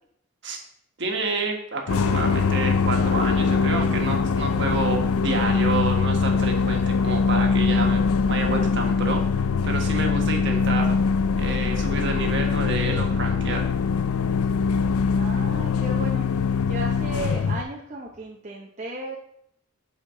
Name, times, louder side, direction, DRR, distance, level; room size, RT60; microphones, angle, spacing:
voice 1, 1.0-11.0 11.4-13.7, right 3 dB, 55° right, 2 dB, 1.5 m, -29 dB
sound 1, 1.9-17.6, left 5 dB, 90° left, 0.4 m, -22 dB
voice 2, 15.1-16.3 16.6-19.2, right 2 dB, 35° right, -1 dB, 0.8 m, -35 dB
8.1 x 5.8 x 3.7 m, 0.70 s
head